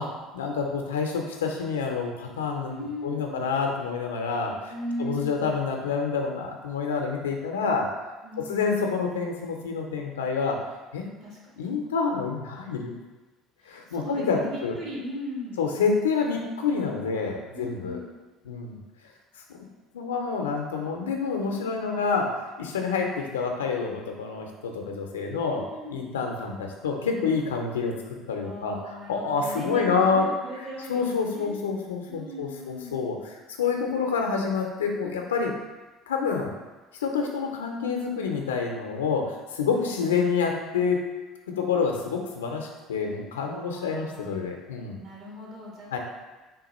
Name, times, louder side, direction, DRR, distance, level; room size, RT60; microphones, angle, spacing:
voice 1, 0.0-4.7 5.0-7.9 8.5-10.6 10.9-11.1 11.6-12.9 13.7-14.8 15.6-18.0 18.5-18.8 19.9-25.6 25.9-27.9 28.3-30.3 30.6-35.5 36.1-36.5 37.0-41.0 41.6-45.0 45.9-46.0, left 5 dB, 85° left, 2 dB, 0.5 m, -28 dB
voice 2, 2.7-3.4 4.7-5.5 8.2-8.8 11.2-11.5 13.9-15.6 17.5-18.1 25.3-26.1 28.4-31.5 32.1-33.0 39.8-40.0 43.5-44.4 45.0-46.0, equal, 55° right, -3 dB, 1.2 m, -38 dB
3.6 x 2.3 x 4.0 m, 1.2 s
hypercardioid pair, 65°, 0 cm